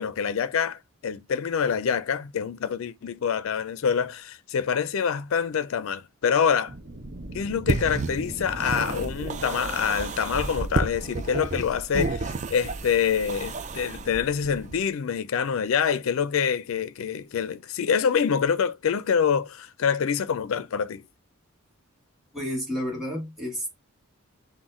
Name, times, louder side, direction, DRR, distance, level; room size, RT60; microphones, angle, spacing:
voice 1, 0.0-6.8 7.3-21.0, left 7 dB, 65° left, 0.4 m, -26 dB
sound 1, 6.7-11.6, right 2 dB, 55° right, 0.8 m, -41 dB
sound 2, 7.7-14.8, right 3 dB, 30° right, 0.4 m, -31 dB
voice 2, 22.3-23.8, equal, ahead, 2.1 m, -31 dB
6.0 x 2.1 x 3.6 m
head